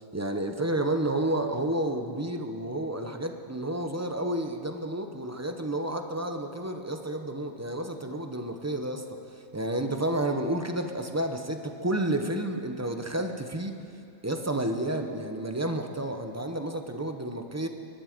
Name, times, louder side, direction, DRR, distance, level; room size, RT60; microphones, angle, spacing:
voice 1, 0.1-9.0 9.5-13.8 14.2-17.7, right 1 dB, 15° right, 5 dB, 0.6 m, -30 dB
21.5 x 12.0 x 5.1 m, 2.4 s
omnidirectional pair, 1.4 m